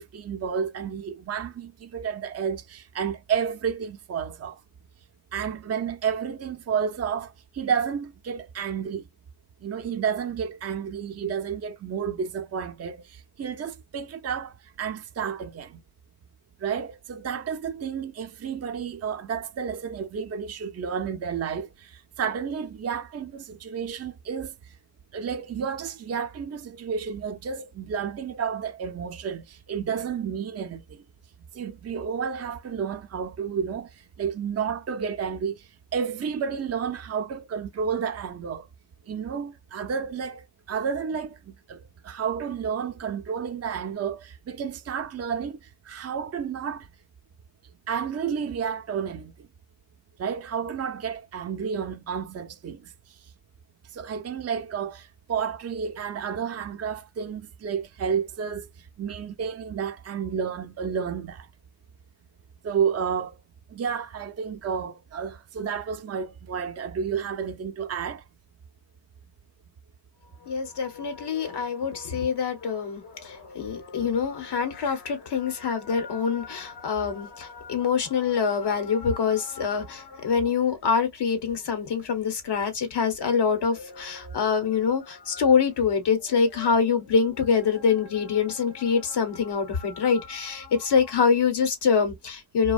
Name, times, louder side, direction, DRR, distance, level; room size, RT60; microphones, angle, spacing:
voice 1, 0.0-4.6 5.3-9.0 9.6-15.8 16.6-24.7 25.1-31.0 31.5-38.7 39.1-46.9 47.9-49.5 50.2-53.2 53.9-61.5 62.6-63.4 63.7-68.2, right 7 dB, 40° right, 0.5 m, -31 dB
voice 2, 70.5-92.7, left 6 dB, 80° left, 1.0 m, -25 dB
2.5 x 2.2 x 2.3 m
cardioid pair, 40°, 40 cm